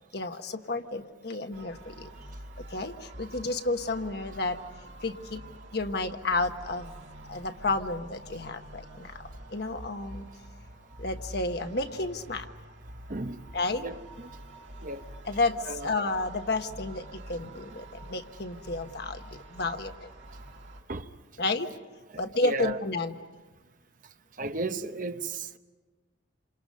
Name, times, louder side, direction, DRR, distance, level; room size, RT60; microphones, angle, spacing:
voice 1, 0.1-2.1 2.7-4.6 5.0-5.4 5.7-6.9 7.3-9.2 9.5-10.3 11.0-12.5 13.5-13.9 15.2-20.1 21.4-21.7 22.2-23.2, left 2 dB, 60° left, 1.3 m, -31 dB
sound 1, 1.5-20.8, right 1 dB, 65° right, 3.0 m, -46 dB
voice 2, 13.1-13.4 13.8-14.3 14.8-15.0 15.7-15.9 20.9-21.1 22.4-22.8 24.4-25.6, right 2 dB, 45° right, 0.9 m, -34 dB
28.5 x 27.5 x 5.4 m
head